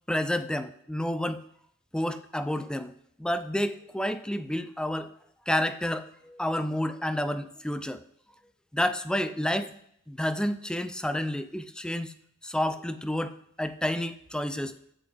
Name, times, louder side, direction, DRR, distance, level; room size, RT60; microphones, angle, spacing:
voice 1, 0.1-1.4 1.9-2.9 3.2-5.1 5.5-8.0 8.7-9.7 10.1-12.1 12.4-14.7, left 1 dB, 5° left, 12 dB, 0.4 m, -30 dB
8.4 x 7.9 x 3.5 m, 0.69 s
head